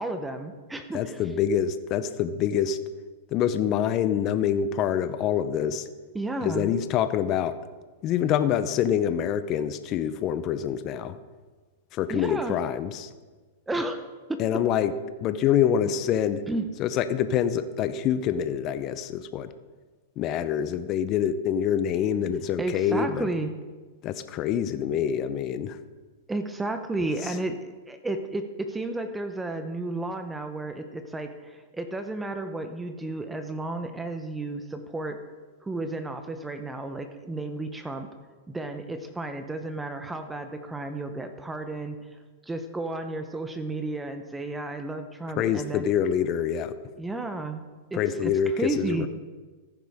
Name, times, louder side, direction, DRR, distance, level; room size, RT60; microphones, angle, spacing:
voice 1, 0.0-1.2 6.1-6.7 12.1-12.6 13.7-14.4 16.5-16.7 22.6-23.5 26.3-35.2 35.6-38.1 38.5-42.1 42.4-45.9 47.0-47.6 47.9-48.3 48.6-49.1, right 2 dB, 10° right, 7 dB, 0.9 m, -32 dB
voice 2, 0.9-2.8 3.3-5.9 6.4-7.6 8.0-11.2 11.9-13.1 14.4-14.9 15.2-16.4 16.8-19.5 20.2-23.3 24.0-25.8 27.2-27.4 45.4-46.8 47.9-49.1, left 9 dB, 40° left, 12 dB, 0.7 m, -26 dB
15.0 x 10.5 x 3.6 m, 1.3 s
hypercardioid pair, 120°, 0 cm